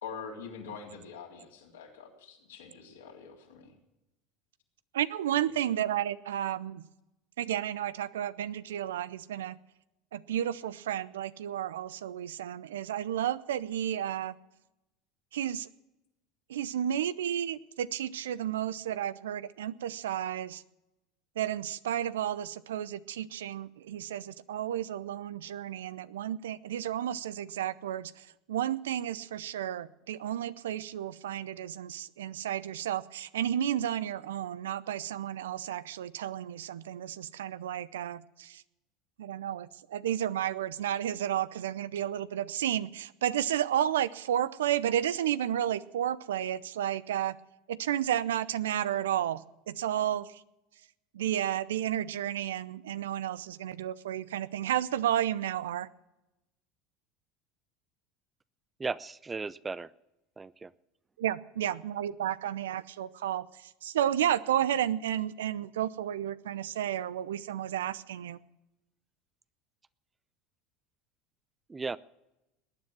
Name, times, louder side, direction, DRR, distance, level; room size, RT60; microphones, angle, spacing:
voice 1, 0.0-3.7, left 6 dB, 80° left, -1 dB, 3.4 m, -44 dB
voice 2, 4.9-6.8 7.4-9.6 10.1-14.3 15.3-15.7 16.5-20.6 21.4-28.1 28.5-38.6 39.2-47.4 47.7-49.4 49.7-50.3 51.1-55.9 61.2-63.5 63.8-68.4, right 11 dB, 75° right, 17 dB, 0.6 m, -32 dB
voice 3, 58.8-59.9 60.4-60.7 71.7-72.0, right 4 dB, 20° right, 18 dB, 0.5 m, -36 dB
19.0 x 9.6 x 6.1 m, 0.94 s
hypercardioid pair, 80°, 0 cm